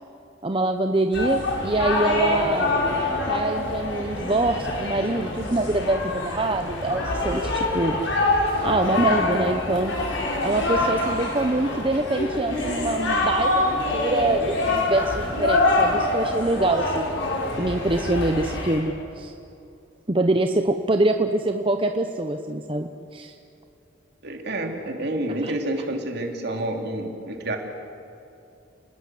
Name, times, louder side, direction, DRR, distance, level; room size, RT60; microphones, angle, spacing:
voice 1, 0.4-2.7 3.3-8.0 8.6-9.9 10.4-17.1 17.6-19.3 20.1-23.3 25.4-25.5, right 2 dB, 25° right, 6 dB, 0.9 m, -24 dB
sound 1, 1.1-18.8, left 2 dB, 65° left, 6.8 m, -25 dB
voice 2, 24.2-27.6, right 1 dB, 55° right, 3 dB, 3.3 m, -28 dB
30.0 x 20.0 x 7.9 m, 2.7 s
head